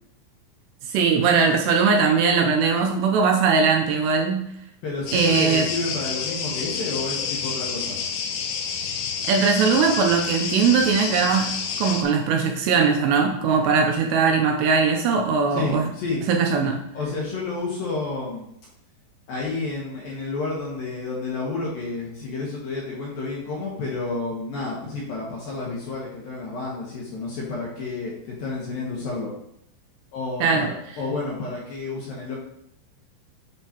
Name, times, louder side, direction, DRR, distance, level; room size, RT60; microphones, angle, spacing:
voice 1, 0.9-4.5 5.1-5.7 9.2-15.9 16.3-16.8 30.4-30.7, right 5 dB, 80° right, 2 dB, 2.6 m, -20 dB
voice 2, 4.8-8.0 15.5-16.2 16.9-18.5 19.3-28.1 28.4-29.3 30.1-32.4, left 3 dB, 70° left, -4 dB, 2.4 m, -30 dB
sound 1, 5.1-12.0, left 6 dB, 90° left, 3.1 m, -29 dB
8.3 x 5.3 x 2.9 m, 0.76 s
omnidirectional pair, 5.2 m